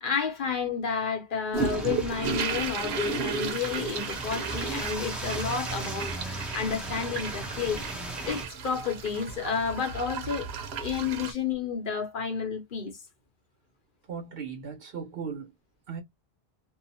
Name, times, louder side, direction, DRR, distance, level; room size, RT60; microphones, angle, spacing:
voice 1, 0.0-7.8 8.2-10.5 10.7-13.0, left 6 dB, 55° left, 0.9 m, -31 dB
sound 1, 1.5-11.3, right 5 dB, 85° right, 0.9 m, -34 dB
sound 2, 1.6-8.5, right 2 dB, ahead, 0.5 m, -37 dB
voice 2, 14.0-15.5 15.9-16.0, right 6 dB, 65° right, 1.2 m, -38 dB
2.7 x 2.0 x 2.6 m
omnidirectional pair, 1.1 m